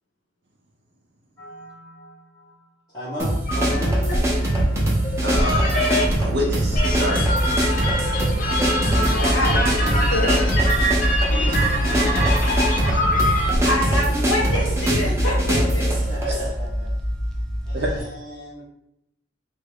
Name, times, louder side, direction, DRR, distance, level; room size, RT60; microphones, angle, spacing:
voice 1, 1.4-4.2 10.7-14.6 16.1-16.9 17.7-18.6, equal, 20° left, -11 dB, 0.9 m, -37 dB
sound 1, 3.2-16.5, equal, 15° right, 0.7 m, -24 dB
sound 2, 3.5-16.2, equal, 45° left, 0.6 m, -23 dB
voice 2, 5.2-5.7 6.2-7.3 8.9-9.1 11.5-11.6 17.7-18.0, equal, 60° right, -4 dB, 0.5 m, -27 dB
sound 3, 6.4-18.0, equal, 5° left, 0.3 m, -27 dB
voice 3, 9.0-10.5 13.6-15.8, equal, 85° left, -2 dB, 1.1 m, -26 dB
3.4 x 2.3 x 3.4 m, 0.82 s
head